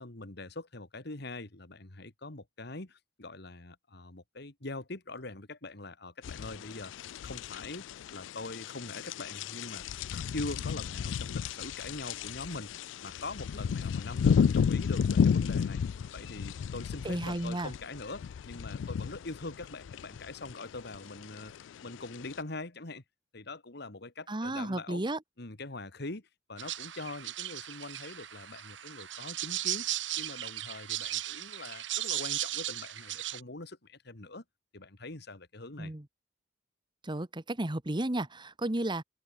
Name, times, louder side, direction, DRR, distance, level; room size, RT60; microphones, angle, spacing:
voice 1, 0.0-6.9 7.2-7.9 8.1-9.8 10.1-15.8 16.1-21.5 21.8-23.0 23.3-25.0 25.4-29.9 30.2-34.4 34.7-35.9, left 2 dB, 65° left, 2.2 m, -43 dB
sound 1, 6.2-22.4, left 6 dB, 90° left, 0.3 m, -33 dB
voice 2, 17.0-17.7 24.3-25.2 35.8-36.0 37.0-39.0, right 1 dB, 25° right, 1.2 m, -33 dB
sound 2, 26.6-33.4, right 14 dB, 80° right, 1.7 m, -36 dB
head